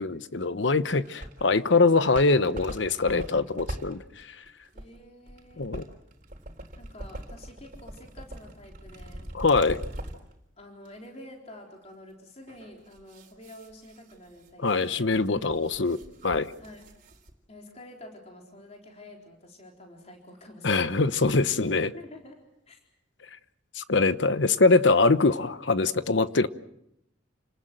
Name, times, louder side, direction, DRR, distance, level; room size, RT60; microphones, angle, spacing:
voice 1, 0.0-4.3 5.6-5.8 9.3-9.8 14.6-16.0 16.2-16.5 20.6-21.9 23.7-26.5, left 3 dB, 70° left, 13 dB, 1.0 m, -23 dB
sound 1, 0.9-1.5 1.9-10.3 10.9-11.0 12.5-17.3, right 1 dB, 45° right, 3.9 m, -42 dB
voice 2, 4.7-5.7 6.8-9.3 10.6-15.1 16.6-17.0 17.5-21.0 21.8-22.8, left 1 dB, 35° left, 1 dB, 4.0 m, -48 dB
29.0 x 19.5 x 7.7 m, 0.80 s
head